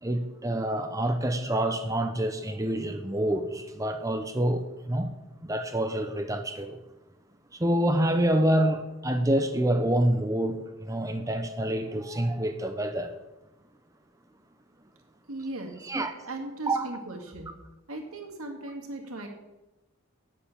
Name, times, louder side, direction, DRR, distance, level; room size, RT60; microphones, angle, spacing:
voice 1, 0.0-5.1 5.4-6.8 7.6-13.1 15.8-16.1 16.7-16.9, right 1 dB, 15° right, 0.7 m, -27 dB
voice 2, 15.3-15.8 16.2-17.5 17.9-19.3, right 2 dB, 85° right, 2.2 m, -37 dB
9.3 x 7.2 x 8.6 m
head